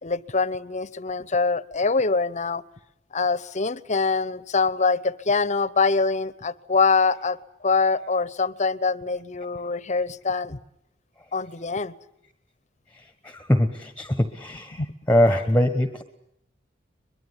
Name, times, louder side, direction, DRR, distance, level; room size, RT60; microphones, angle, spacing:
voice 1, 0.0-2.6 3.1-7.4 7.6-10.6 11.3-11.9 14.8-14.9, left 4 dB, 40° left, 18 dB, 0.9 m, -24 dB
voice 2, 13.2-14.8 15.1-16.0, left 1 dB, 10° left, 10 dB, 1.3 m, -22 dB
23.0 x 22.5 x 9.9 m, 0.77 s
head